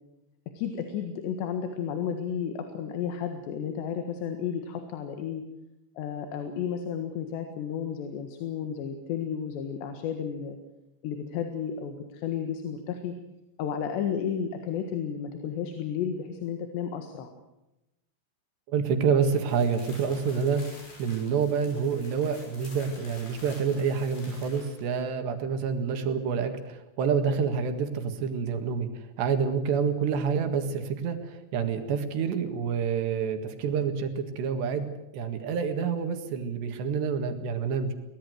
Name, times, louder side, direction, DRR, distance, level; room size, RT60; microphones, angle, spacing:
voice 1, 0.6-5.4 6.0-10.6 11.0-13.1 13.6-17.3, left 8 dB, 80° left, 6 dB, 3.8 m, -32 dB
voice 2, 18.7-20.6 21.0-28.9 29.2-37.9, right 6 dB, 80° right, 7 dB, 4.0 m, -28 dB
sound 1, 19.2-25.0, left 3 dB, 65° left, 8.2 m, -49 dB
23.0 x 19.0 x 8.0 m, 0.93 s
omnidirectional pair, 5.0 m